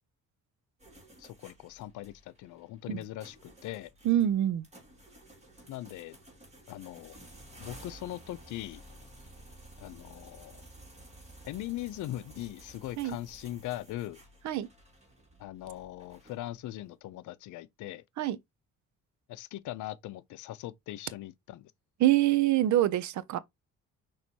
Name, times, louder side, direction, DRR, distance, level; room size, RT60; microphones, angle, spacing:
sound 1, 0.8-16.7, right 1 dB, 20° right, 2.5 m, -53 dB
voice 1, 1.2-3.9 5.7-6.2 6.7-7.2 7.6-8.8 9.8-10.6 11.4-14.2 15.4-18.0 19.3-21.7, left 14 dB, 80° left, 0.5 m, -40 dB
voice 2, 4.0-4.6 13.0-13.2 14.4-14.7 18.2-18.4 22.0-23.4, right 13 dB, 70° right, 0.6 m, -25 dB
6.0 x 3.1 x 2.8 m
cardioid pair, 90°, 30 cm